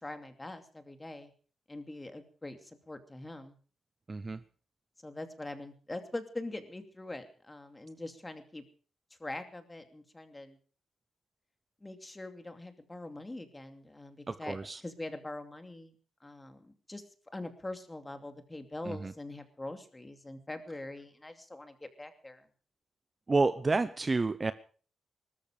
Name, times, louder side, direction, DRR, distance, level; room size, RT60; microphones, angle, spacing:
voice 1, 0.0-1.3 1.7-3.6 5.0-8.6 9.2-10.6 11.8-14.6 14.8-15.9 16.2-17.0 17.3-22.4, left 2 dB, 15° left, 7 dB, 2.6 m, -43 dB
voice 2, 4.1-4.4 14.3-14.8 18.8-19.1 23.3-24.5, right 3 dB, 30° right, 13 dB, 0.8 m, -29 dB
19.5 x 13.5 x 5.0 m, 0.41 s
cardioid pair, 95°, 0 cm